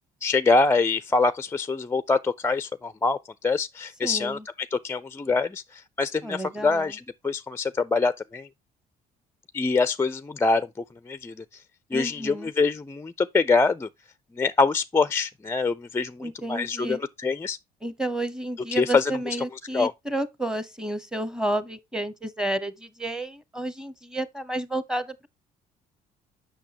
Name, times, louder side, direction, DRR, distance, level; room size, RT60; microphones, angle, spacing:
voice 1, 0.2-4.4 4.7-8.5 9.5-10.7 11.1-11.6 11.9-13.9 14.4-17.6 18.7-19.1 19.7-19.9, left 4 dB, 15° left, 0.4 m, -24 dB
voice 2, 4.0-4.4 6.2-6.9 11.9-12.5 16.2-17.0 17.8-25.3, right 1 dB, 5° right, 1.1 m, -31 dB
8.3 x 6.2 x 2.9 m
cardioid pair, 110°, 17 cm